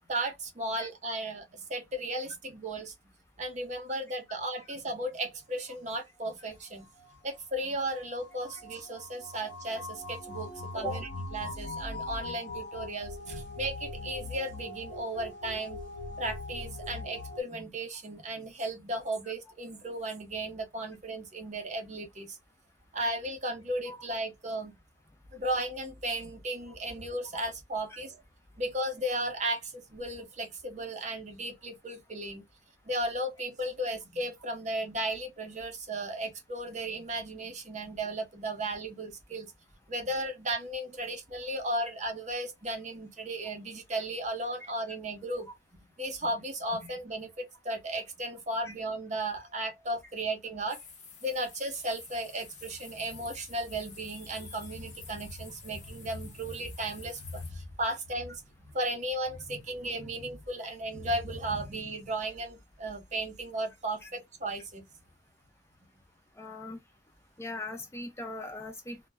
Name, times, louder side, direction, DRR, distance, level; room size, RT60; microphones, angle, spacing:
voice 1, 0.1-2.9 3.4-6.9 7.2-15.8 16.2-22.4 22.9-24.7 25.3-28.2 28.6-32.4 32.9-39.5 39.9-45.5 46.0-50.8 51.2-64.8, right 1 dB, 40° right, 0.7 m, -35 dB
sound 1, 6.2-17.4, left 2 dB, 80° left, 0.7 m, -41 dB
sound 2, 50.7-57.5, left 5 dB, 40° left, 0.8 m, -50 dB
voice 2, 66.4-66.8 67.4-69.0, left 2 dB, 15° left, 0.4 m, -40 dB
2.1 x 2.0 x 3.3 m
head